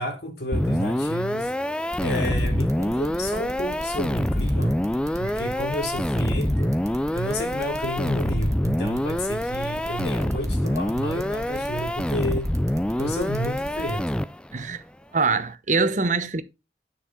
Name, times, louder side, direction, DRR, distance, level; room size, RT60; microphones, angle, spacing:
voice 1, 0.0-1.5 2.0-4.8 5.2-6.8 7.1-12.5 13.0-14.2, equal, 65° left, 3.3 m, -31 dB
sound 1, 0.5-14.6, left 1 dB, 5° left, 0.4 m, -26 dB
sound 2, 1.9-14.0, right 1 dB, 20° right, 1.6 m, -38 dB
voice 2, 14.5-14.8 15.1-16.4, right 4 dB, 45° right, 1.0 m, -24 dB
10.0 x 5.8 x 4.1 m
head